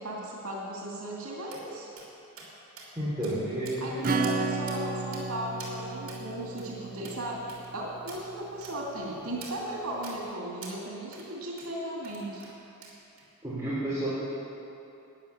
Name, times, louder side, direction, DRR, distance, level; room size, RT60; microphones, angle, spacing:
voice 1, 0.0-1.9 3.8-12.5, right 1 dB, 85° right, -3 dB, 2.2 m, -37 dB
sound 1, 1.5-1.6 2.0-2.1 2.4-2.5 2.8-2.9 3.2-3.4 3.7-3.9 4.2-4.4 4.7-4.8 5.1-5.3 5.6-5.7 6.1-6.2 6.6-6.7 7.0-7.2 7.5-7.7 8.1-8.2 8.6-8.8 9.4-9.6 10.0-10.2 10.6-10.8 11.1-11.3 11.6-11.7 12.0-12.5 12.8-13.3, right 4 dB, 65° right, 3.0 m, -45 dB
voice 2, 2.9-4.0 13.4-14.1, right 1 dB, 15° right, -11 dB, 3.4 m, -31 dB
Acoustic guitar / Strum, 4.0-8.3, right 3 dB, 40° right, 0.5 m, -33 dB
13.0 x 9.5 x 7.1 m, 2.8 s
head